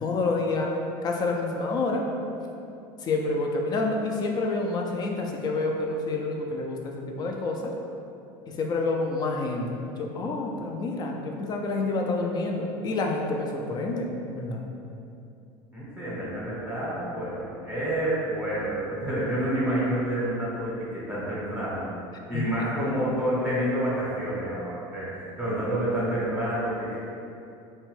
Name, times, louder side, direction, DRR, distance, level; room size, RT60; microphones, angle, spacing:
voice 1, 0.0-0.7 1.0-2.1 3.0-7.7 8.5-14.6 22.3-22.4 22.9-23.0, left 3 dB, 35° left, 1 dB, 0.4 m, -28 dB
voice 2, 15.7-21.9 22.3-27.0, right 1 dB, 15° right, -10 dB, 0.8 m, -28 dB
2.7 x 2.2 x 3.1 m, 2.7 s
supercardioid pair, 110°, 12 cm